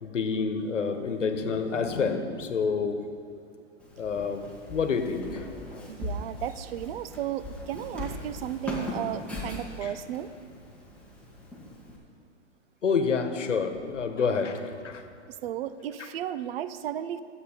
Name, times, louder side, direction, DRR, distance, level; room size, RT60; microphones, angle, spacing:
voice 1, 0.0-3.0 4.0-5.4 5.7-5.9 9.8-9.9 12.8-15.0, left 5 dB, 90° left, 7 dB, 1.2 m, -28 dB
Walk footsteps, 3.8-12.0, left 1 dB, 5° left, 1.9 m, -39 dB
voice 2, 5.9-10.3 15.4-17.2, right 11 dB, 55° right, 13 dB, 0.6 m, -34 dB
12.5 x 7.9 x 5.1 m, 2.4 s
hypercardioid pair, 120°, 36 cm